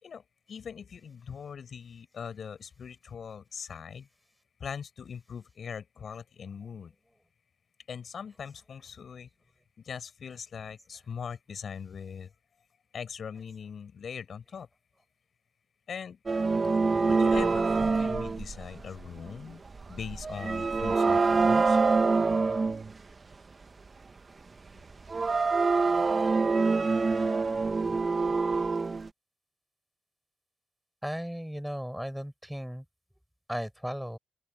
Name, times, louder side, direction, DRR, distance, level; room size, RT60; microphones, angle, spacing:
voice 1, 0.0-4.1 4.6-6.9 7.9-9.3 9.8-12.3 12.9-14.7 15.9-16.2 17.0-19.6 19.9-21.8, left 7 dB, 50° left, 5.1 m, -41 dB
sound 1, 16.3-19.2 19.8-22.9 25.1-29.1, right 4 dB, 30° right, 1.4 m, -25 dB
voice 2, 31.0-32.8 33.5-34.2, equal, ahead, 5.3 m, -35 dB
open air
cardioid pair, 90°, 0 cm